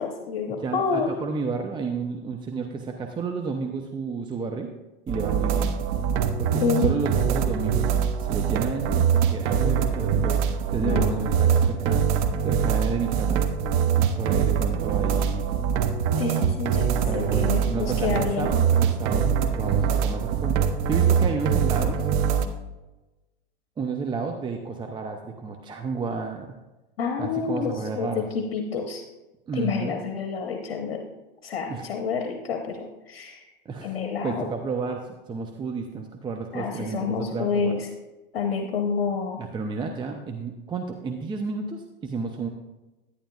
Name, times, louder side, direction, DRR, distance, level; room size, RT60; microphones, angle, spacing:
voice 1, 0.0-1.2 6.6-6.9 10.8-11.1 16.2-18.5 27.0-29.0 29.5-31.0 31.4-33.5 33.8-34.5 36.5-37.9 38.3-39.4, left 5 dB, 75° left, 4 dB, 1.1 m, -28 dB
voice 2, 0.6-4.7 5.1-5.8 6.4-10.4 10.7-12.1 12.4-13.4 13.9-15.5 16.9-22.1 23.8-26.6 27.2-28.3 29.5-30.0 31.7-31.9 33.7-34.0 34.2-37.8 39.4-42.5, right 4 dB, 15° right, 3 dB, 0.6 m, -31 dB
sound 1, 5.1-22.5, right 7 dB, 45° right, 0.8 m, -23 dB
11.5 x 10.0 x 2.4 m, 1.1 s
hypercardioid pair, 110°, 30 cm